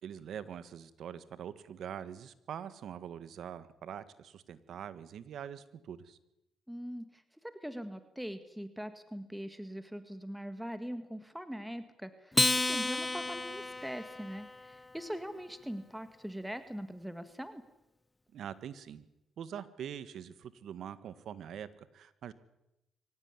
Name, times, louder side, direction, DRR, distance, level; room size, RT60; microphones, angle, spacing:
voice 1, 0.0-6.2 18.3-19.1 19.4-22.3, right 9 dB, 70° right, 15 dB, 1.6 m, -44 dB
voice 2, 6.7-17.6, equal, 5° right, 10 dB, 1.7 m, -42 dB
Acoustic guitar, 12.3-15.0, left 2 dB, 15° left, 0.8 m, -32 dB
24.0 x 17.0 x 9.8 m, 0.92 s
cardioid pair, 90°, 0 cm